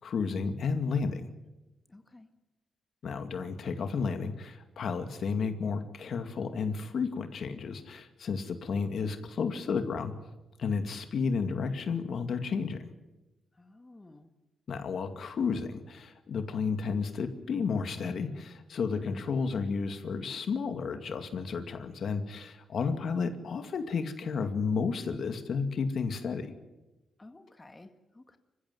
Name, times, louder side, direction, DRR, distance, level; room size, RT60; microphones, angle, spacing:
voice 1, 0.0-1.3 3.0-10.1 10.6-12.8 14.7-26.5, left 5 dB, 65° left, 7 dB, 2.3 m, -32 dB
voice 2, 1.9-2.3 13.6-14.3 27.2-28.4, left 2 dB, 20° left, 6 dB, 1.9 m, -53 dB
26.5 x 15.5 x 9.4 m, 1.1 s
cardioid pair, 95°, 0 cm